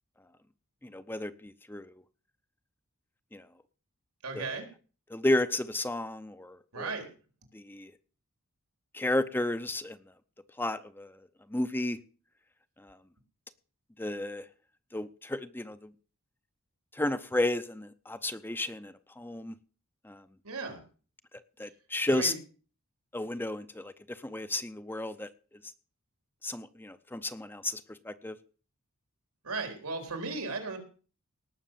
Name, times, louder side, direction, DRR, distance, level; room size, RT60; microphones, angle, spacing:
voice 1, 0.8-1.9 3.3-3.5 4.3-4.6 5.1-6.9 7.5-7.9 8.9-10.0 10.6-11.2 11.5-12.0 12.8-13.0 14.0-14.5 14.9-15.9 16.9-19.5 20.0-20.2 21.6-22.3 23.1-25.3 26.4-28.4, left 1 dB, 10° left, 11 dB, 0.6 m, -33 dB
voice 2, 4.2-4.6 6.7-7.1 20.4-20.8 22.1-22.4 29.4-30.8, right 3 dB, 85° right, 5 dB, 3.9 m, -36 dB
18.5 x 6.4 x 7.5 m, 0.39 s
head